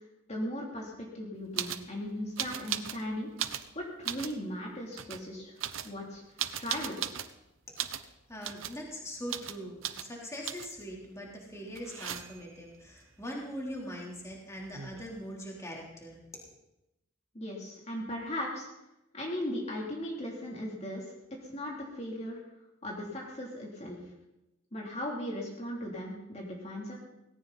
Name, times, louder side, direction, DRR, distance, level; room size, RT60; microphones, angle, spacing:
voice 1, 0.3-3.3 3.7-5.5 5.8-6.2 6.6-7.0 17.3-18.7 19.1-21.1 21.4-22.4 22.8-24.0 24.7-26.9, left 1 dB, 35° left, -2 dB, 3.1 m, -37 dB
sound 1, 1.5-1.9 2.4-3.0 3.3-4.4 4.9-5.2 5.6-7.3 7.8-8.1 8.4-8.8 9.3-9.6 9.8-10.1 10.4-10.8 11.7-12.5 14.3-14.4 14.6-15.2, right 10 dB, 75° right, 0.9 m, -37 dB
voice 2, 8.3-16.4, equal, 15° left, -2 dB, 3.4 m, -42 dB
18.5 x 17.0 x 4.1 m, 0.92 s
head